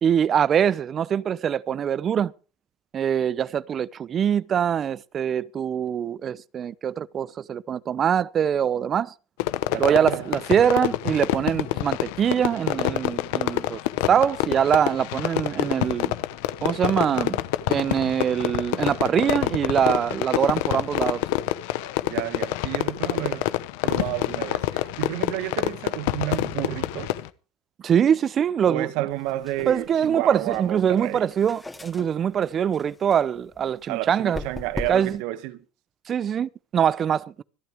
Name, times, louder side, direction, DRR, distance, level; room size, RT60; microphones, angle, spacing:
voice 1, 0.0-2.3 2.9-9.1 9.8-13.8 14.1-16.2 16.6-17.4 17.7-21.2 27.8-28.9 29.7-34.4 34.9-35.2 36.1-37.4, right 8 dB, 35° right, 0.6 m, -23 dB
Fireworks, 9.4-27.3, left 16 dB, 80° left, 0.9 m, -27 dB
voice 2, 9.7-10.3 22.1-23.6 23.8-27.2 28.7-31.3 33.9-35.6, right 16 dB, 70° right, 1.2 m, -31 dB
sound 1, 29.1-35.2, left 2 dB, 10° left, 2.2 m, -40 dB
25.5 x 9.1 x 3.5 m
supercardioid pair, 110°, 0 cm